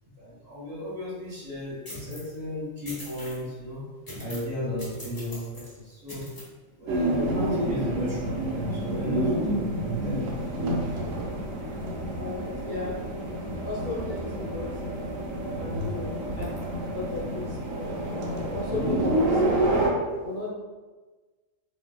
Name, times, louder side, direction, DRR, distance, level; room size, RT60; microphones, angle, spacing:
voice 1, 0.2-3.8 4.2-6.3 6.7-10.7 11.0-11.1, left 1 dB, 50° right, -8 dB, 1.8 m, -35 dB
sound 1, 1.9-2.3 2.9-3.4 4.1-4.5 4.8-5.7 6.1-6.4, left 1 dB, 20° left, 0.8 m, -41 dB
sound 2, 6.9-19.9, right 1 dB, 85° right, 1.0 m, -28 dB
voice 2, 12.2-13.0 13.6-14.7 15.5-16.5 16.9-19.6 20.2-20.5, left 3 dB, 10° right, -9 dB, 1.2 m, -35 dB
3.7 x 2.6 x 2.2 m, 1.3 s
omnidirectional pair, 1.3 m